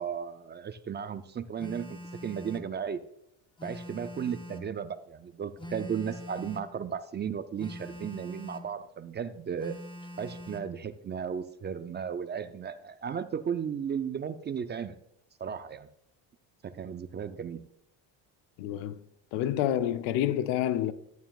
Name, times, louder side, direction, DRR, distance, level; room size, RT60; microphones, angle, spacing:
voice 1, 0.0-3.0 3.6-9.8 10.2-15.0 15.4-15.9 16.6-17.6, right 7 dB, 25° right, 0.4 m, -35 dB
Telephone, 1.6-2.7 3.6-4.7 5.6-6.7 7.6-8.7 9.6-10.7, left 1 dB, 10° left, 0.7 m, -43 dB
voice 2, 18.6-19.0 19.3-20.9, left 11 dB, 90° left, 0.7 m, -28 dB
11.0 x 9.3 x 2.3 m
cardioid pair, 120°, 44 cm